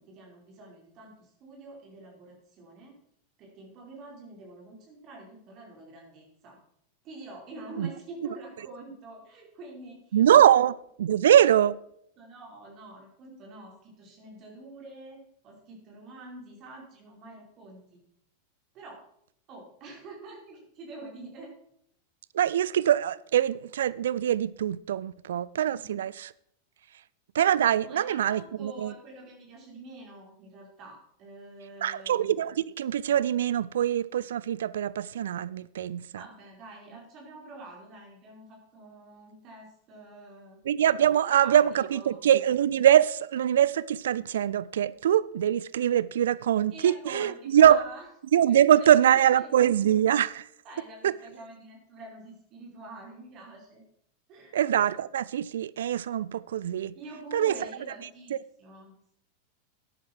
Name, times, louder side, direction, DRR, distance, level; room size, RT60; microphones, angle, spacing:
voice 1, 0.0-2.9 3.4-6.6 7.0-10.5 12.2-18.0 18.7-19.0 19.5-21.5 25.7-26.0 27.8-32.2 36.1-40.6 41.2-42.3 46.7-48.0 48.5-49.5 50.6-53.8 54.3-54.6 56.9-59.1, right 2 dB, 35° right, 5.1 m, -46 dB
voice 2, 10.1-11.8 22.3-26.3 27.3-28.9 31.8-36.2 40.7-47.8 48.3-50.4 51.0-51.1 54.5-56.9 57.3-57.5, right 10 dB, 60° right, 0.4 m, -23 dB
13.0 x 10.5 x 4.7 m
figure-of-eight pair, 90°, 0 cm